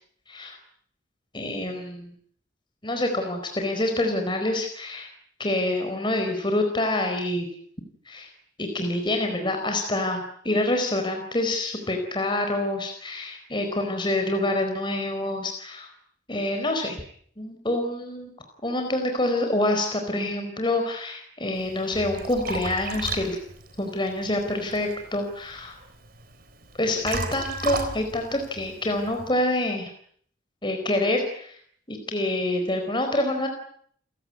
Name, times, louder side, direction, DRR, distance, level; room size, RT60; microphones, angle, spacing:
voice 1, 0.3-0.6 1.3-2.1 2.8-5.1 5.4-7.5 8.1-8.3 8.6-15.9 16.3-17.0 17.4-18.3 18.6-23.4 23.8-25.8 26.8-29.9 30.6-31.5 31.9-33.5, left 1 dB, 25° left, 4 dB, 4.5 m, -26 dB
Liquid, 21.5-29.3, right 3 dB, 50° right, 3.8 m, -36 dB
29.5 x 17.0 x 9.6 m, 0.62 s
head